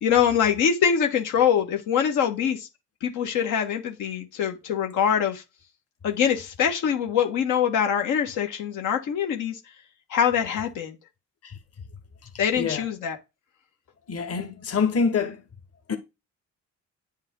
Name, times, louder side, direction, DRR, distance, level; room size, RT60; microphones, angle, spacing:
voice 1, 0.0-2.7 3.0-5.4 6.0-9.6 10.1-10.9 12.4-13.2, left 8 dB, 90° left, 1.7 m, -24 dB
voice 2, 14.1-15.4 15.9-16.0, left 5 dB, 50° left, 1.7 m, -25 dB
9.7 x 5.5 x 3.8 m
cardioid pair, 90°, 30 cm